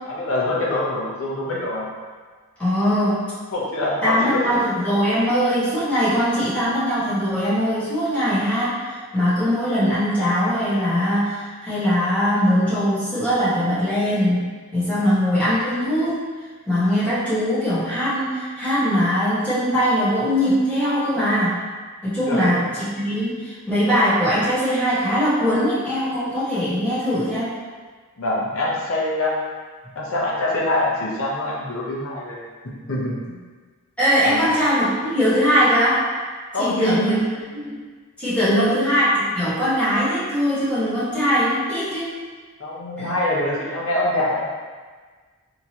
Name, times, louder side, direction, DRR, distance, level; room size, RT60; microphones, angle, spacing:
voice 1, 0.1-1.9 2.9-3.0 3.5-4.3 22.2-22.6 28.2-29.4 29.9-32.4 32.9-33.4 34.2-34.5 36.5-37.2 38.4-38.8 42.6-44.5, left 1 dB, 70° left, -5 dB, 0.8 m, -24 dB
voice 2, 2.6-3.3 4.0-14.4 14.7-16.2 16.7-21.6 22.0-27.6 34.0-36.0 36.6-37.2 37.6-37.8 38.2-42.1 43.0-43.1, equal, 5° left, -13 dB, 1.3 m, -21 dB
3.6 x 2.9 x 2.9 m, 1.5 s
head